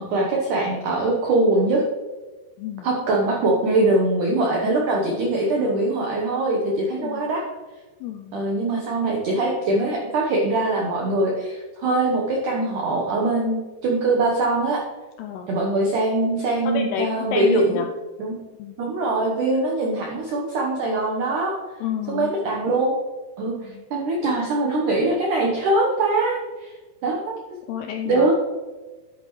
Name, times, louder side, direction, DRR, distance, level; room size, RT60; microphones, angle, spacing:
voice 1, 0.1-1.8 2.8-7.5 8.3-14.8 15.5-17.8 18.2-18.3 18.8-21.6 22.1-23.0 23.4-23.5 23.9-26.7 27.0-27.2 28.1-28.3, right 2 dB, 80° right, -1 dB, 1.8 m, -22 dB
voice 2, 8.0-8.4 15.2-15.5 16.6-17.9 18.6-18.8 21.8-22.3 23.5-23.8 27.7-28.3, left 8 dB, 85° left, 4 dB, 2.3 m, -30 dB
11.0 x 8.6 x 3.1 m, 1.3 s
omnidirectional pair, 5.2 m